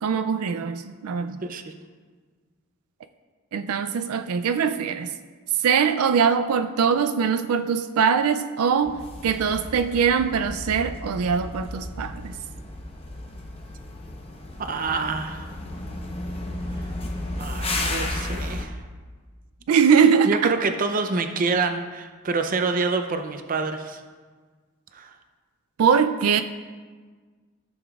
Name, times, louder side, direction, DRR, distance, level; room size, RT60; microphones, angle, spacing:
voice 1, 0.0-1.4 3.5-5.1 5.6-12.3 19.7-20.5 25.8-26.4, right 6 dB, 85° right, 10 dB, 0.4 m, -22 dB
voice 2, 1.4-1.7 14.6-15.5 17.4-18.8 20.2-24.0 24.9-25.1, right 4 dB, 40° right, 6 dB, 0.6 m, -27 dB
sound 1, 8.8-18.7, left 2 dB, 25° left, 0.9 m, -33 dB
14.5 x 6.9 x 2.4 m, 1.5 s
head